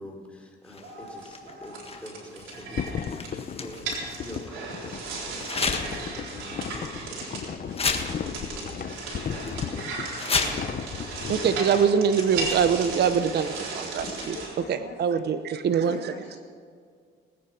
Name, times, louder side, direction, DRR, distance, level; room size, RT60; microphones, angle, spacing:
voice 1, 0.0-9.8 15.8-16.0, left 1 dB, 5° left, 0 dB, 3.8 m, -45 dB
sound 1, 0.7-4.5 5.4-6.1 6.5-6.6 7.2-7.4 7.7-8.5 8.7-8.8 9.1-9.5 10.0-10.9 11.7-11.9 12.2-13.0 14.0-14.6, left 4 dB, 30° left, 1.6 m, -33 dB
sound 2, 0.8-14.5, right 3 dB, 90° right, 4.0 m, -36 dB
sound 3, 2.7-11.7, left 7 dB, 45° left, 0.8 m, -35 dB
voice 2, 11.3-14.4 14.7-16.0, right 7 dB, 55° right, 10 dB, 0.8 m, -24 dB
voice 3, 14.3-15.2 15.9-16.4, left 5 dB, 70° left, 0 dB, 1.7 m, -44 dB
19.5 x 9.7 x 5.9 m, 2.1 s
cardioid pair, 90°, 20 cm